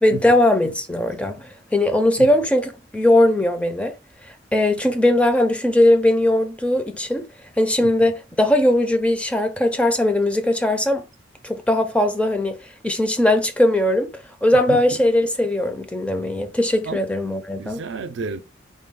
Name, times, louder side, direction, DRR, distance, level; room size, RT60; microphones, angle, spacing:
voice 1, 0.0-3.9 4.5-7.3 7.6-11.0 11.4-12.6 12.8-14.1 14.4-17.8, left 1 dB, 5° left, 0.4 m, -19 dB
voice 2, 7.8-8.1 14.5-15.0 16.8-17.0 17.6-18.4, right 4 dB, 75° right, 0.4 m, -32 dB
3.7 x 2.2 x 3.5 m
head